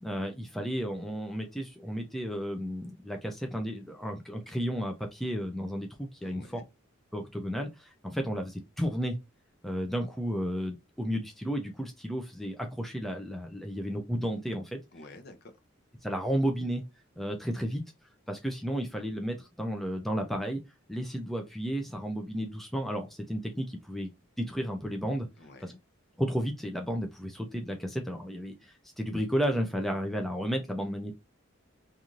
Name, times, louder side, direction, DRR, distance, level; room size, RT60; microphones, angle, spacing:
voice 1, 0.0-6.6 7.1-9.2 9.6-14.8 16.0-16.8 17.2-17.8 18.3-20.6 20.9-24.1 24.4-25.3 25.6-25.7 26.2-31.1, equal, ahead, 0.3 m, -33 dB
voice 2, 6.2-6.7 14.9-15.5 25.4-25.8, left 2 dB, 50° left, 0.6 m, -50 dB
2.5 x 2.4 x 2.9 m
head